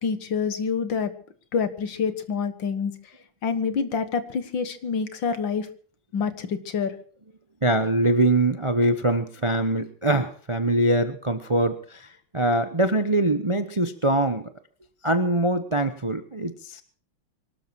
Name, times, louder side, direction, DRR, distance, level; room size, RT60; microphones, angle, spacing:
voice 1, 0.0-1.1 1.5-2.9 3.4-5.7 6.1-6.9, left 6 dB, 70° left, 11 dB, 2.2 m, -27 dB
voice 2, 7.6-14.5 15.0-16.8, right 1 dB, 30° right, 10 dB, 0.6 m, -23 dB
23.5 x 13.0 x 4.6 m, 0.44 s
omnidirectional pair, 2.1 m